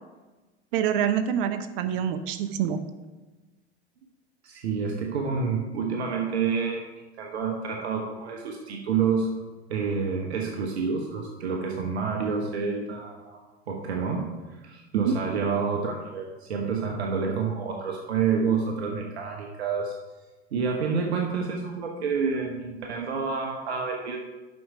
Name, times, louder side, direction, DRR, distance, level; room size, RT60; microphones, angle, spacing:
voice 1, 0.7-2.8 14.9-15.2, right 8 dB, 55° right, 10 dB, 0.7 m, -26 dB
voice 2, 4.4-9.4 9.7-19.9 20.5-24.2, right 5 dB, 70° right, 1 dB, 1.1 m, -28 dB
8.1 x 6.3 x 4.9 m, 1.2 s
figure-of-eight pair, 80°, 33 cm